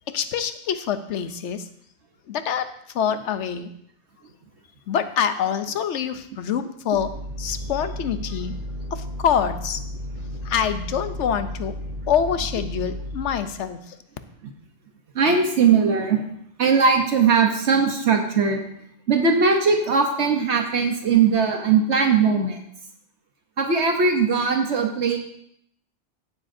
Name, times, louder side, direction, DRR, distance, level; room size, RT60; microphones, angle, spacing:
voice 1, 0.1-1.7 2.3-2.7 2.9-3.7 4.9-7.1 7.4-8.5 8.9-9.8 10.4-11.7 12.1-13.8, left 8 dB, 75° left, 10 dB, 1.0 m, -25 dB
sound 1, 6.9-13.5, equal, 50° right, 3.8 m, -33 dB
voice 2, 15.1-16.2 16.6-18.6 19.1-22.6 23.6-25.2, right 5 dB, 70° right, 3 dB, 1.2 m, -19 dB
16.0 x 7.4 x 2.7 m, 0.72 s
omnidirectional pair, 1.2 m